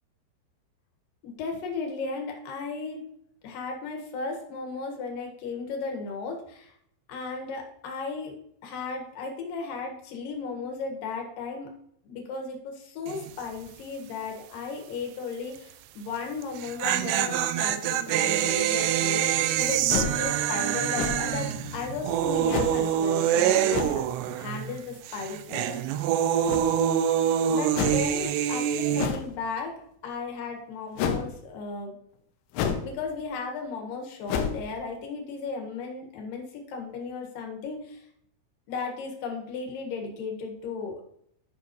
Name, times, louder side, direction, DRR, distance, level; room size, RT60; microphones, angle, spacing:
voice 1, 1.2-3.0 3.4-6.7 7.1-8.3 8.6-11.7 12.0-24.0 24.4-26.1 27.5-32.0 32.8-38.0 38.7-41.0, left 4 dB, 60° left, 2 dB, 2.7 m, -35 dB
sound 1, 13.1-13.4 13.7-13.8 16.4-24.8 25.0-29.1, right 10 dB, 90° right, 2.4 m, -25 dB
sound 2, 19.9-20.3 20.9-21.4 22.5-22.8 23.7-24.0 26.4-26.9 27.7-28.1 29.0-29.4 31.0-31.3 32.5-32.9 33.3-33.4 34.3-34.7, left 7 dB, 80° left, 3.1 m, -29 dB
11.5 x 6.1 x 3.1 m, 0.70 s
omnidirectional pair, 5.4 m